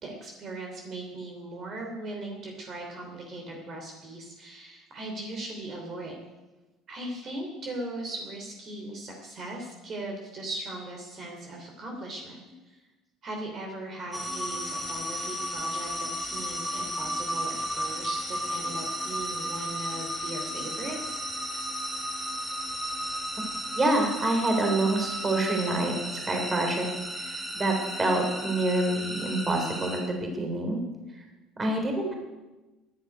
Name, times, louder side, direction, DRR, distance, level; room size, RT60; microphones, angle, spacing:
voice 1, 0.0-6.2 6.9-12.8 13.2-21.2, right 2 dB, 35° right, 1 dB, 3.1 m, -39 dB
sound 1, 14.1-30.0, equal, 5° right, 5.2 m, -34 dB
voice 2, 23.7-25.9 26.3-26.9 27.1-30.8 31.2-31.3 31.6-32.1, right 2 dB, 20° right, 3 dB, 3.5 m, -27 dB
13.0 x 11.0 x 9.5 m, 1.1 s
cardioid pair, 145°, 0 cm